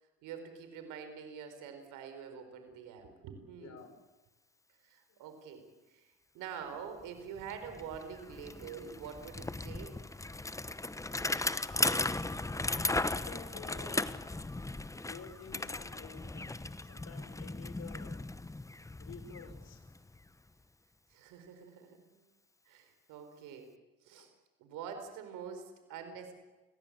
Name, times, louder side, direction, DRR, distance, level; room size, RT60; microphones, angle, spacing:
voice 1, 0.2-3.9 4.8-10.0 21.1-22.2 22.7-23.7 24.0-24.3 24.6-26.3, right 7 dB, 75° right, 7 dB, 4.8 m, -46 dB
voice 2, 3.5-3.9 5.1-5.2 13.1-14.1 15.1-18.2 19.0-19.9 24.2-24.3, left 5 dB, 55° left, 9 dB, 4.9 m, -52 dB
Bicycle, 7.0-7.1 7.4-20.3, left 2 dB, 10° left, 1.0 m, -37 dB
29.5 x 17.5 x 8.8 m, 1.1 s
supercardioid pair, 80°, 31 cm